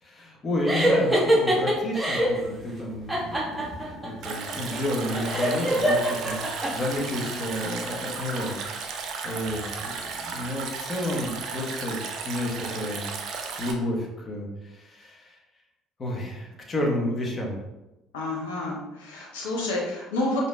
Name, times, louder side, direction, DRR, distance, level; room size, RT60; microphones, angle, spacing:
voice 1, 0.0-13.0 13.6-15.4 16.0-17.6, left 1 dB, 35° left, 0 dB, 1.0 m, -31 dB
sound 1, 0.7-2.4 3.1-6.7, equal, 10° right, 1.0 m, -24 dB
Stream, 4.2-13.7, right 5 dB, 55° right, 0.5 m, -35 dB
voice 2, 18.1-20.5, left 1 dB, 75° left, -3 dB, 0.7 m, -29 dB
4.8 x 2.7 x 2.2 m, 0.98 s
hypercardioid pair, 55°, 0 cm